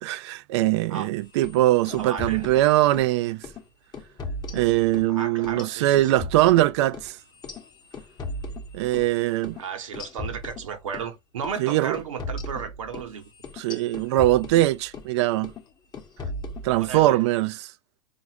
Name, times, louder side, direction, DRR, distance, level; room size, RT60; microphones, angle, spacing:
voice 1, 0.0-3.4 4.5-7.2 8.7-9.6 11.6-12.0 13.6-15.5 16.6-17.7, right 16 dB, 55° right, 0.4 m, -22 dB
sound 1, 1.3-3.1 3.4-3.6 3.9-5.1 5.4-9.1 9.4-9.6 9.9-11.1 11.4-11.6 11.9-15.1 15.4-15.7 15.9-17.1, left 2 dB, 25° left, 0.9 m, -37 dB
voice 2, 2.0-2.5 5.1-6.2 9.6-13.2 16.7-17.2, right 7 dB, 70° right, 1.1 m, -34 dB
3.9 x 2.5 x 2.9 m
figure-of-eight pair, 90°, 17 cm